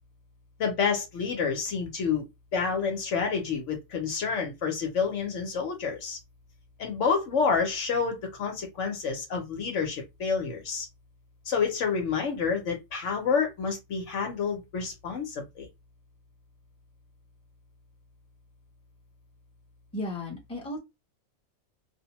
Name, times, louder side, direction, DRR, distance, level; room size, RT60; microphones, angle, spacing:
voice 1, 0.6-2.2 2.5-6.2 6.8-10.9 11.5-15.7, left 5 dB, 65° left, 1.0 m, -28 dB
voice 2, 19.9-20.8, left 1 dB, 5° left, 0.7 m, -34 dB
2.5 x 2.1 x 2.8 m
omnidirectional pair, 1.4 m